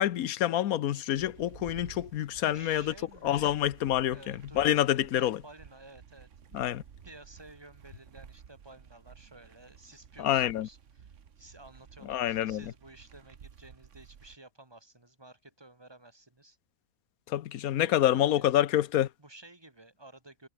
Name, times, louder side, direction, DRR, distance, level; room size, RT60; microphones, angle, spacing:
voice 1, 0.0-2.9 3.2-5.4 6.5-6.8 10.2-10.7 12.0-12.7 17.3-19.1, left 12 dB, 70° left, 1.2 m, -27 dB
sound 1, 1.1-14.4, right 7 dB, 55° right, 1.4 m, -53 dB
voice 2, 2.4-3.5 4.1-6.3 7.0-16.6 17.8-18.6 19.2-20.5, right 2 dB, 15° right, 2.7 m, -53 dB
omnidirectional pair, 1.6 m